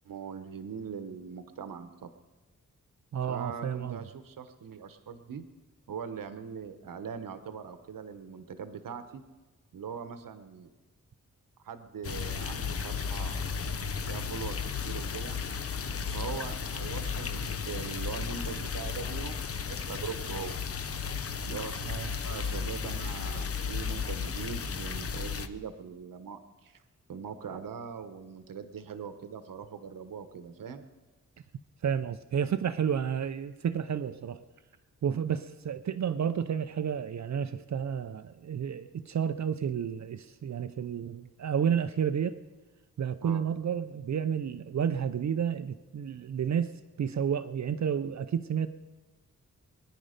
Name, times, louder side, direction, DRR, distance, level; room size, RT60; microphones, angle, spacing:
voice 1, 0.0-2.1 3.3-5.4 5.9-9.2 9.7-10.7 11.6-13.5 14.1-15.4 16.1-20.6 21.4-21.8 22.2-26.8 27.1-30.9 43.2-43.4, right 6 dB, 90° right, 10 dB, 1.0 m, -41 dB
voice 2, 3.1-4.0 21.8-22.1 31.8-34.4 35.0-42.4 43.0-46.7 47.0-48.7, right 8 dB, 60° right, 11 dB, 0.5 m, -31 dB
sound 1, 12.0-25.5, left 6 dB, 45° left, 0.7 m, -34 dB
23.0 x 10.5 x 5.1 m, 1.2 s
wide cardioid pair, 165°, 32 cm